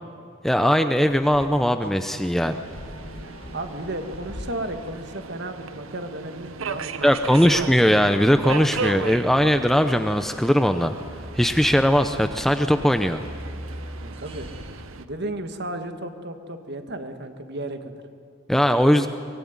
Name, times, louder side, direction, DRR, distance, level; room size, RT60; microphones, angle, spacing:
voice 1, 0.4-2.6 7.0-10.9 11.4-13.2 18.5-19.1, equal, ahead, 8 dB, 0.6 m, -19 dB
sound 1, 1.1-6.0, left 1 dB, 25° left, 1.1 m, -42 dB
Subway metro underground, 2.4-15.0, right 4 dB, 70° right, 0.8 m, -37 dB
sound 2, 3.2-14.8, equal, 25° right, 1.9 m, -43 dB
voice 2, 3.5-7.5 14.0-14.5 15.0-17.9, right 1 dB, 50° right, 7 dB, 1.8 m, -34 dB
23.5 x 19.5 x 9.5 m, 2.4 s
head